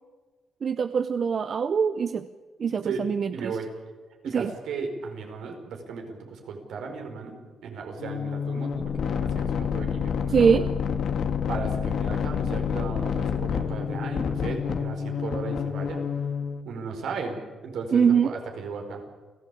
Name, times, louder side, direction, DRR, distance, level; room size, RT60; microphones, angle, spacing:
voice 1, 0.6-2.3 2.6-3.6 4.3-4.5 10.3-10.7 17.9-18.3, right 6 dB, 45° right, 11 dB, 0.8 m, -23 dB
voice 2, 2.7-3.0 3.3-3.7 4.2-10.5 11.5-16.0 16.6-19.0, right 4 dB, 75° right, 3 dB, 5.1 m, -36 dB
sound 1, 8.0-16.6, left 7 dB, 60° left, 1.8 m, -28 dB
29.5 x 16.0 x 8.6 m, 1.4 s
cardioid pair, 115°, 0 cm